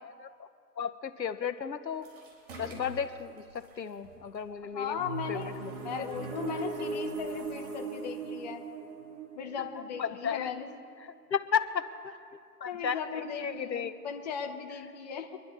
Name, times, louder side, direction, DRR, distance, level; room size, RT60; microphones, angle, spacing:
voice 1, 0.8-2.1 2.6-5.0 5.3-5.7 6.0-6.1 10.0-10.5 11.3-12.2 12.6-13.0 13.4-13.9, left 7 dB, 85° left, 10 dB, 1.1 m, -33 dB
sound 1, 1.9-8.2, right 1 dB, 35° right, 4.3 m, -52 dB
voice 2, 4.7-8.6 9.3-10.7 12.6-15.4, left 7 dB, 25° left, 3 dB, 1.0 m, -37 dB
sound 2, 5.0-10.7, right 4 dB, 55° right, 2.7 m, -39 dB
24.5 x 11.5 x 4.0 m, 2.3 s
hypercardioid pair, 150°, 50 cm